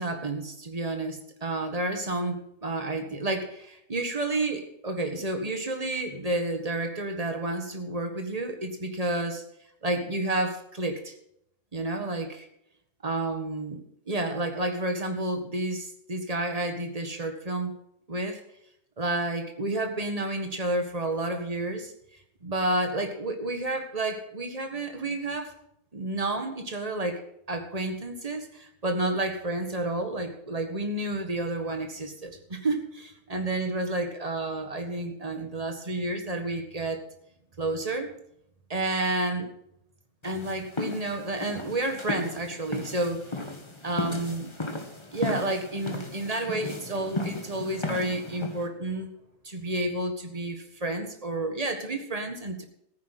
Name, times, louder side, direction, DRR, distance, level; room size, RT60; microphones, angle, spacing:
voice 1, 0.0-9.4 9.8-11.1 11.7-12.5 13.0-17.7 18.1-18.4 19.0-21.9 22.4-25.5 25.9-27.2 27.5-37.0 37.6-38.1 38.7-39.5 40.2-43.2 43.8-44.5 45.1-49.1 49.4-52.6, right 2 dB, 20° right, 5 dB, 1.6 m, -30 dB
sound 1, 40.2-48.7, left 2 dB, 15° left, 1.3 m, -35 dB
14.5 x 9.6 x 6.0 m, 0.77 s
omnidirectional pair, 1.9 m